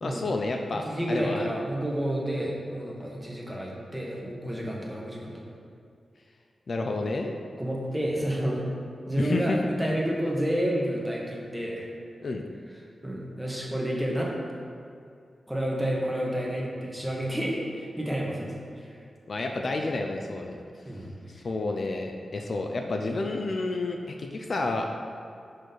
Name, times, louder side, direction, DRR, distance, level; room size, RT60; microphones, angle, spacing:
voice 1, 0.0-1.5 6.7-7.4 9.2-9.6 12.2-12.4 19.3-20.6 21.4-24.8, left 2 dB, 60° left, 3 dB, 0.5 m, -30 dB
voice 2, 0.9-5.3 7.6-8.6 9.1-11.9 13.0-14.3 15.5-18.5 18.8-18.9 20.8-21.1, equal, 5° right, -3 dB, 1.5 m, -30 dB
6.3 x 5.1 x 4.0 m, 2.4 s
cardioid pair, 50°, 0 cm